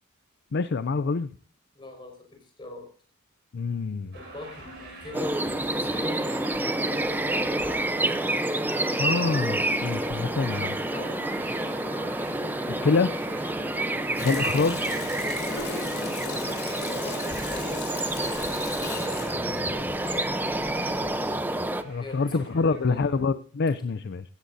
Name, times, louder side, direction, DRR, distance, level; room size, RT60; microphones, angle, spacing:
voice 1, 0.5-1.3 3.5-4.1 9.0-10.8 12.7-13.1 14.2-14.9 21.8-24.2, left 4 dB, 50° left, 12 dB, 0.5 m, -26 dB
voice 2, 1.7-2.9 4.1-6.2 6.8-7.7 10.9-11.7 13.4-13.6 15.2-21.1 22.0-23.2, left 3 dB, 25° left, 2 dB, 5.4 m, -43 dB
sound 1, 4.1-23.2, right 2 dB, 55° right, 6.5 m, -43 dB
sound 2, 5.1-21.8, right 1 dB, 10° right, 0.7 m, -28 dB
Water tap faucet, 14.1-20.5 20.9-21.1, left 6 dB, 75° left, 4.1 m, -39 dB
16.5 x 15.5 x 2.7 m, 0.41 s
head